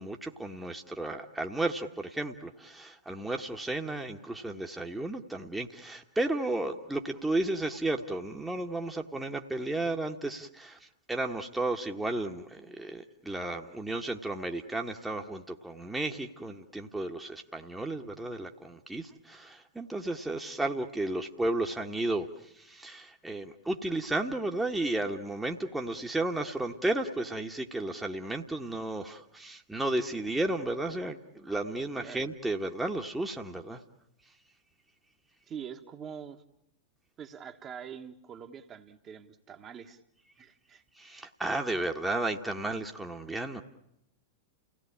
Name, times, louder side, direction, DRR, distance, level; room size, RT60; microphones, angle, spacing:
voice 1, 0.0-10.8 11.1-22.3 22.5-33.8 41.0-43.6, right 2 dB, 5° right, 3 dB, 1.3 m, -33 dB
voice 2, 32.0-32.3 35.5-36.4 37.2-40.0 40.4-40.8, right 7 dB, 25° right, 4 dB, 1.4 m, -44 dB
29.5 x 17.5 x 8.6 m, 0.82 s
figure-of-eight pair, 95°, 0 cm